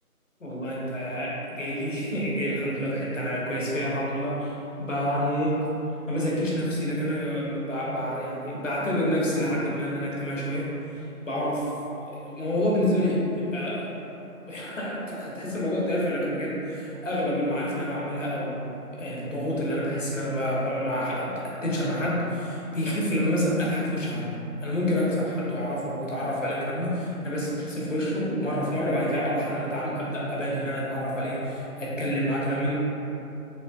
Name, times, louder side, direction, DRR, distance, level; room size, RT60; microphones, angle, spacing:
voice 1, 0.4-5.5 6.1-10.6 11.2-11.7 12.0-13.9 14.5-18.5 19.0-21.3 21.6-24.3 24.6-32.7, equal, 55° left, -5 dB, 1.1 m, -28 dB
7.0 x 2.9 x 2.4 m, 3.0 s
figure-of-eight pair, 170°, 46 cm